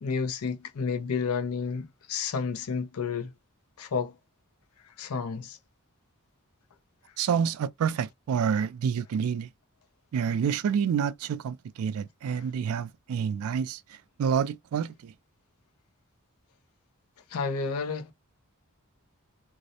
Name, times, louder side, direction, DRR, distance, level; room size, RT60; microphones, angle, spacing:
voice 1, 0.0-3.3 3.8-4.2 4.8-5.6 17.3-18.1, left 5 dB, 80° left, 0.5 m, -31 dB
voice 2, 7.2-9.5 10.1-15.1, right 7 dB, 75° right, 0.3 m, -28 dB
2.5 x 2.0 x 2.7 m
head